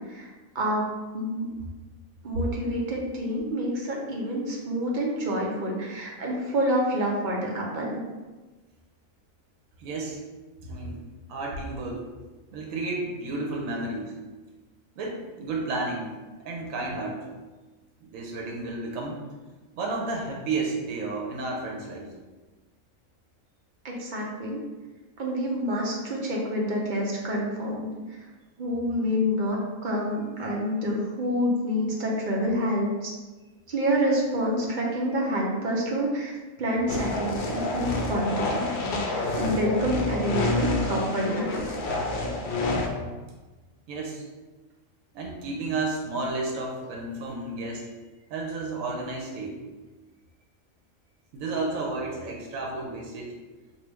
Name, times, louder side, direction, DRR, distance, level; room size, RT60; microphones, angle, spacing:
voice 1, 1.1-1.5 2.2-8.0 23.8-24.6 25.2-28.2 28.6-33.1 33.7-36.3 36.6-38.7 39.0-41.5, equal, 50° right, -2 dB, 0.6 m, -27 dB
voice 2, 9.8-10.2 10.6-11.0 11.3-12.0 12.5-14.1 15.0-16.1 16.4-17.2 18.0-19.2 19.7-22.1 43.9-44.2 45.1-47.9 48.3-49.6 51.3-53.3, right 3 dB, 80° right, -1 dB, 1.0 m, -32 dB
sound 1, 36.9-42.9, left 2 dB, 80° left, 0.4 m, -28 dB
3.0 x 2.5 x 3.4 m, 1.2 s
omnidirectional pair, 1.4 m